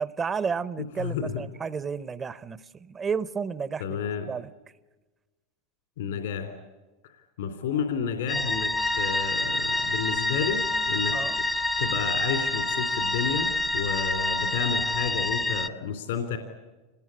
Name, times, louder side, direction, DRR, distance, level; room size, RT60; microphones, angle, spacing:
voice 1, 0.0-4.0 4.3-4.5 11.1-11.4, right 6 dB, 25° right, 17 dB, 0.8 m, -32 dB
voice 2, 1.0-1.5 3.8-4.3 6.0-6.5 7.4-11.4 11.8-16.4, left 7 dB, 80° left, 7 dB, 3.2 m, -31 dB
sound 1, 8.3-15.7, left 2 dB, 10° left, 0.7 m, -27 dB
Wind instrument woodwind instrument, 8.8-15.1, right 10 dB, 85° right, 4.6 m, -43 dB
26.5 x 20.0 x 9.8 m, 1.2 s
supercardioid pair, 120°, 0 cm